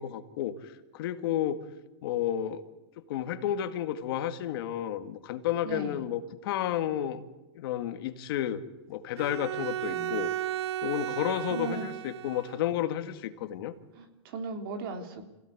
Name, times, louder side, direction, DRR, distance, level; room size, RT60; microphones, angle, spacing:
voice 1, 0.0-1.6 2.0-2.6 3.1-7.2 7.5-10.3 10.8-13.7, left 11 dB, 50° left, 9 dB, 1.9 m, -32 dB
voice 2, 5.6-6.0 9.8-10.2 11.1-11.2 11.5-11.9 13.9-15.2, right 4 dB, 50° right, 6 dB, 3.5 m, -37 dB
Bowed string instrument, 9.2-12.7, right 12 dB, 65° right, 0.9 m, -34 dB
26.5 x 17.0 x 9.6 m, 1.0 s
supercardioid pair, 160°, 15 cm